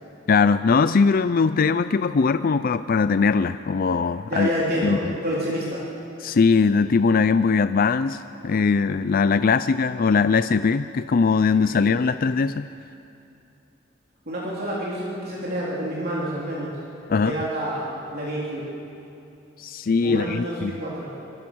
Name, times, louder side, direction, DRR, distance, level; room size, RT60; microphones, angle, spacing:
voice 1, 0.3-4.5 4.8-5.0 6.2-12.7 17.1-17.4 19.6-20.8, left 5 dB, 50° left, 12 dB, 0.4 m, -20 dB
voice 2, 4.3-5.9 11.5-11.9 14.2-16.7 17.2-18.7 20.0-21.1, equal, 55° right, -6 dB, 3.5 m, -28 dB
24.0 x 22.5 x 6.3 m, 2.7 s
head